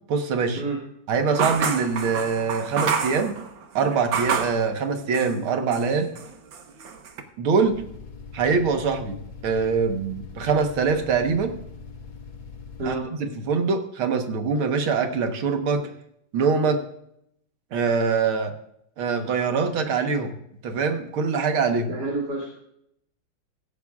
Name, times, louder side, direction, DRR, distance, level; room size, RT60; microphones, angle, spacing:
voice 1, 0.1-0.6 1.1-3.4 3.7-6.1 7.4-7.8 8.3-9.2 9.4-11.6 12.9-15.9 16.3-16.8 17.7-18.5 19.0-20.3 20.6-21.9, right 5 dB, 85° right, 5 dB, 2.1 m, -23 dB
sound 1, 1.3-4.6 5.1-5.9 6.1-7.2, right 6 dB, 70° right, 1.9 m, -28 dB
sound 2, 7.6-13.0, left 5 dB, 70° left, 2.1 m, -42 dB
voice 2, 21.9-22.5, right 3 dB, 50° right, -2 dB, 2.7 m, -28 dB
16.0 x 16.0 x 2.4 m, 0.74 s
omnidirectional pair, 2.2 m